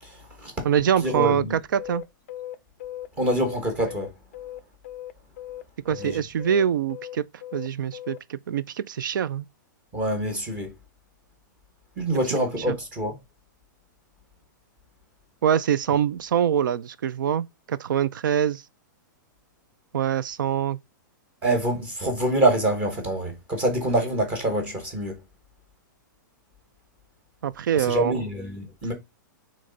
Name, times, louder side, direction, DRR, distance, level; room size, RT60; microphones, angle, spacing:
voice 1, 0.0-0.7 1.0-1.5 3.2-4.1 6.0-6.2 9.9-10.7 12.0-13.2 21.4-25.2 27.7-28.9, right 1 dB, 15° right, 1.1 m, -25 dB
voice 2, 0.6-2.0 5.8-7.3 7.5-9.5 12.7-12.8 15.4-18.6 19.9-20.8 27.4-28.1, right 8 dB, 75° right, 0.5 m, -24 dB
sound 1, 1.8-5.1 5.4-8.2, left 13 dB, 35° left, 0.4 m, -38 dB
7.5 x 3.2 x 3.9 m
supercardioid pair, 180°, 11 cm